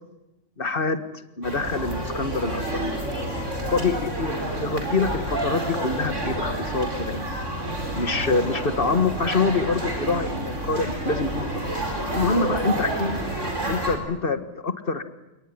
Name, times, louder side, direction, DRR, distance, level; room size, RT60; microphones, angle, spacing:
voice 1, 0.6-2.9 3.7-7.3 8.0-13.2 13.7-15.0, left 4 dB, 50° left, 10 dB, 1.9 m, -26 dB
sound 1, 1.4-14.0, right 1 dB, 80° right, 4.9 m, -29 dB
28.5 x 19.0 x 10.0 m, 0.97 s
omnidirectional pair, 1.2 m